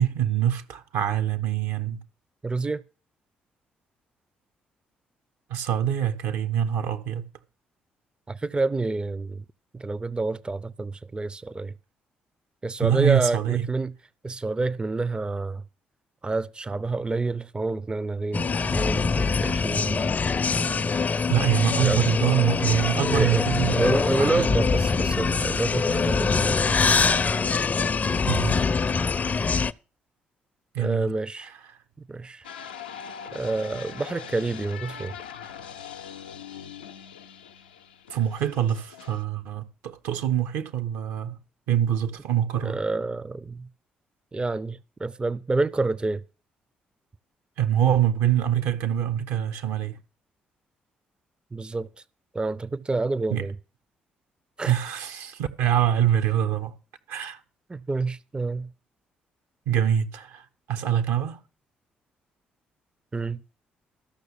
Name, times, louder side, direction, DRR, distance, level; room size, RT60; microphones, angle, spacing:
voice 1, 0.0-2.0 5.5-7.2 12.8-13.6 21.3-23.9 24.2-24.4 28.3-28.7 30.7-31.1 38.1-41.4 41.7-42.8 47.6-50.0 53.3-53.4 54.7-56.7 57.1-57.4 59.7-61.4, right 10 dB, 70° right, 0.9 m, -25 dB
voice 2, 2.4-2.8 8.3-9.4 9.7-11.7 12.6-13.9 14.2-15.6 16.2-20.2 20.5-20.9 21.8-22.3 23.1-26.6 30.8-31.5 32.1-32.5 33.3-35.2 42.6-43.7 44.3-46.2 51.5-51.9 52.3-53.5 54.6-54.7 57.7-58.7 63.1-63.4, right 3 dB, 20° right, 0.5 m, -28 dB
sound 1, 18.3-29.7, left 4 dB, 35° left, 0.5 m, -24 dB
sound 2, 32.4-39.2, left 7 dB, 85° left, 0.5 m, -41 dB
13.0 x 6.2 x 6.9 m
figure-of-eight pair, 40°, 5 cm